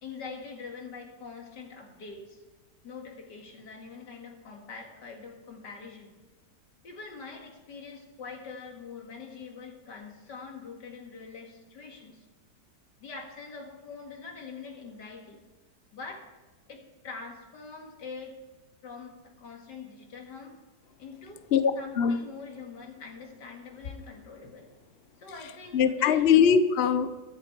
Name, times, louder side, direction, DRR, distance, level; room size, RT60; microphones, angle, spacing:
voice 1, 0.0-2.4 2.8-6.2 6.8-12.3 13.0-15.4 15.9-16.3 16.7-18.3 18.8-20.6 21.0-21.4 21.8-24.7 25.2-26.2, left 4 dB, 75° left, 2 dB, 2.6 m, -44 dB
voice 2, 21.5-22.2 25.7-27.2, left 7 dB, 55° left, 11 dB, 0.7 m, -22 dB
22.0 x 7.4 x 4.5 m, 1.2 s
omnidirectional pair, 1.9 m